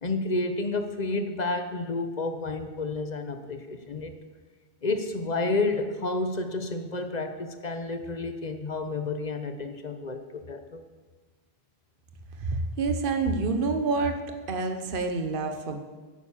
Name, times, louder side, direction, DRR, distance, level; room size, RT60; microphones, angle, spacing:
voice 1, 0.0-4.1 4.8-10.8, left 3 dB, 45° left, 7 dB, 1.1 m, -30 dB
voice 2, 12.4-14.2 14.5-15.8, right 3 dB, 60° right, 6 dB, 1.1 m, -27 dB
10.0 x 9.3 x 7.3 m, 1.4 s
omnidirectional pair, 1.1 m